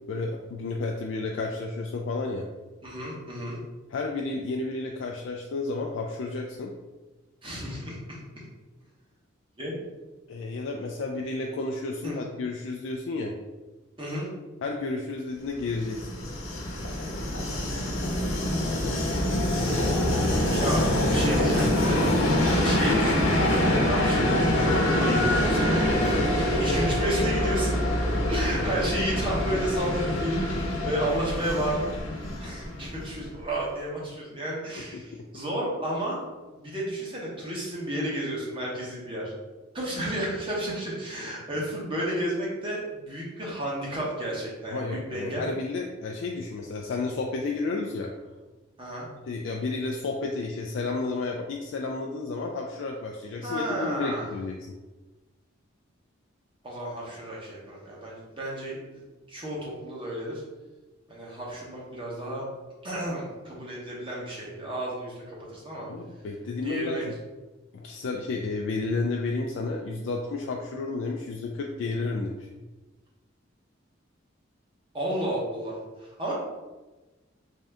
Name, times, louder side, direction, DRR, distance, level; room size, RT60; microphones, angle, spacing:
voice 1, 0.1-2.4 3.9-6.7 10.3-13.3 14.6-16.1 34.9-35.0 44.7-48.1 49.3-54.7 65.8-67.0 67.7-72.5, left 3 dB, 70° left, 0 dB, 0.3 m, -31 dB
voice 2, 2.8-3.6 7.4-8.2 9.6-9.7 12.0-12.2 14.0-14.3 20.5-27.8 28.3-31.9 32.4-36.2 36.5-39.3 39.7-45.5 48.8-49.1 53.4-54.3 56.6-59.0 59.3-60.4 61.1-62.5 62.8-65.9 66.6-67.0 74.9-76.3, right 1 dB, 25° right, -5 dB, 1.0 m, -32 dB
Train, 15.6-33.4, left 1 dB, 90° left, 0.9 m, -25 dB
3.6 x 2.6 x 3.4 m, 1.2 s
head